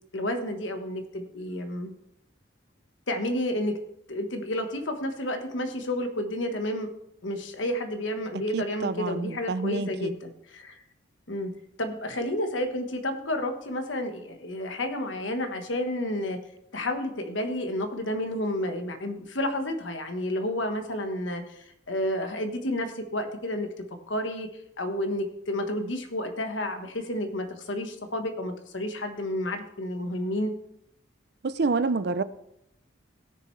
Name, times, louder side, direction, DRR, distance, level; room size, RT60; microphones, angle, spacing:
voice 1, 0.1-1.9 3.1-3.8 4.1-6.9 7.2-10.8 11.3-11.5 11.8-16.4 16.7-23.7 24.1-24.5 24.8-30.5, left 1 dB, 75° left, 1.3 m, -31 dB
voice 2, 8.5-10.1 31.4-32.2, right 4 dB, 55° right, 0.5 m, -28 dB
17.5 x 6.7 x 3.2 m
head